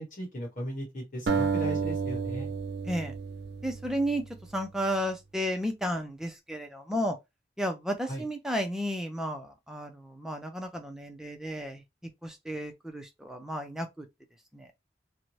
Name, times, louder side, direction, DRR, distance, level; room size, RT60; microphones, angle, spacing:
voice 1, 0.0-2.5 8.1-8.2, right 1 dB, 45° left, 1.1 m, -37 dB
sound 1, 1.3-4.5, right 5 dB, 65° right, 0.4 m, -31 dB
voice 2, 3.6-4.2 4.5-7.2 7.6-11.8 12.2-14.1 14.5-14.7, equal, 5° right, 0.4 m, -33 dB
2.7 x 2.1 x 3.1 m
head